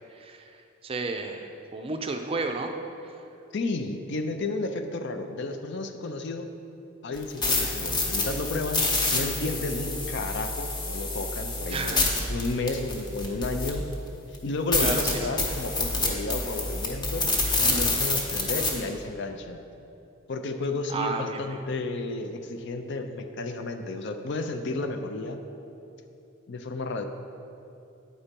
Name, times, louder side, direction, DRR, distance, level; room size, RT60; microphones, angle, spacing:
voice 1, 0.1-2.8 3.1-3.2 11.7-12.1 14.8-15.3 20.9-21.6, right 3 dB, 25° right, 5 dB, 0.4 m, -32 dB
voice 2, 3.5-6.5 7.0-12.0 12.3-13.9 14.3-17.3 17.7-19.6 20.3-25.4 26.5-27.0, left 2 dB, 55° left, 7 dB, 0.5 m, -32 dB
sound 1, 7.2-13.9 14.3-14.4 14.7-18.7, left 3 dB, 20° left, 0.9 m, -27 dB
9.1 x 4.2 x 5.2 m, 2.7 s
head